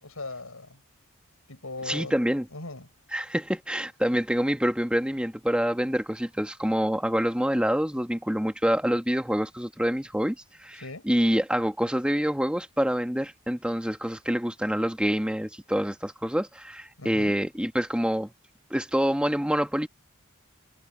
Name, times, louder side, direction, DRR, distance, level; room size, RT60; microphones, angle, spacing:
voice 1, 0.0-0.8 1.5-2.2 2.5-2.9 10.7-11.1 17.0-17.4, left 2 dB, 85° left, 5.8 m, -39 dB
voice 2, 1.8-2.4 3.1-18.3 18.7-19.9, equal, 5° right, 1.6 m, -26 dB
head